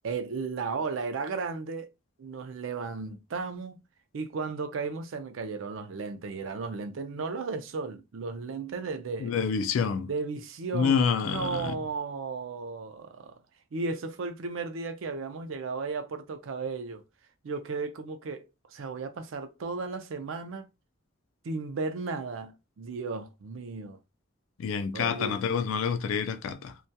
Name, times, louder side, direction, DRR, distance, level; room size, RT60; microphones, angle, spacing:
voice 1, 0.0-1.9 2.2-3.8 4.1-9.4 10.1-13.4 13.7-17.0 17.4-20.7 21.4-24.0 24.9-25.4, right 4 dB, 80° right, 0.4 m, -35 dB
voice 2, 9.2-10.1 10.7-11.7 24.6-26.8, left 6 dB, 85° left, 0.3 m, -27 dB
2.2 x 2.2 x 2.7 m
head